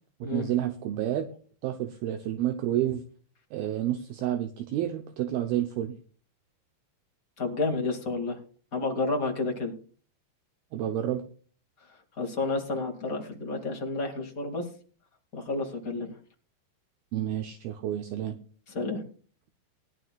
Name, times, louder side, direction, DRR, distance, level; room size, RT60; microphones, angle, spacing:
voice 1, 0.2-1.3 1.6-3.0 3.5-6.0 10.7-11.2 17.1-18.4, right 12 dB, 75° right, 8 dB, 2.4 m, -29 dB
voice 2, 7.4-8.4 8.7-9.7 12.2-14.7 15.3-16.1 18.7-19.0, left 3 dB, 30° left, 2 dB, 1.6 m, -30 dB
20.0 x 11.0 x 2.4 m, 0.41 s
omnidirectional pair, 5.1 m